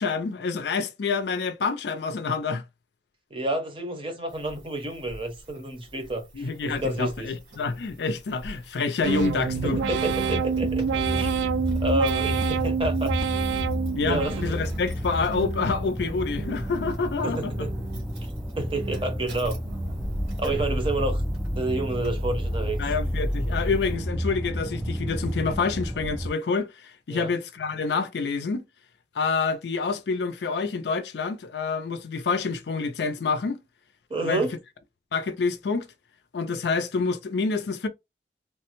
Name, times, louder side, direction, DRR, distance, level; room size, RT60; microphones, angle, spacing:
voice 1, 0.0-2.6 6.3-9.8 13.9-17.5 22.8-28.6 29.1-33.6 34.2-34.5 35.1-35.9 36.3-37.9, left 4 dB, 70° left, 0.4 m, -27 dB
voice 2, 3.3-7.3 9.6-11.3 11.8-13.1 14.0-14.6 17.2-17.7 18.6-19.5 20.4-21.2 21.6-22.8 27.1-27.3 34.1-34.5, right 2 dB, 30° right, 0.7 m, -29 dB
sound 1, 4.3-24.0, equal, 70° right, 1.1 m, -37 dB
sound 2, 9.0-14.9 15.3-15.9 16.4-17.0 17.5-18.1 18.6-19.2 19.7-20.2, right 6 dB, 90° right, 0.3 m, -29 dB
sound 3, 9.1-26.3, equal, 5° right, 0.3 m, -31 dB
3.1 x 2.1 x 3.0 m
head